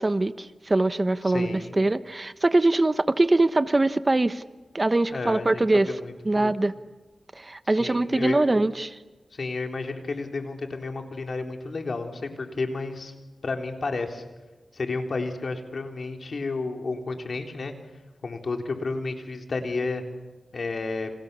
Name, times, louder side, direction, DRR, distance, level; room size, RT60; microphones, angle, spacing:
voice 1, 0.0-4.4 4.7-5.9 6.3-6.7 7.3-9.0, right 2 dB, 30° right, 12 dB, 1.1 m, -23 dB
voice 2, 1.3-1.7 5.1-6.5 7.7-8.4 9.3-13.1 13.4-14.2 14.7-17.7 18.2-20.0 20.5-21.1, left 3 dB, 65° left, 4 dB, 3.7 m, -31 dB
30.0 x 27.0 x 7.0 m, 1.2 s
cardioid pair, 55°, 0 cm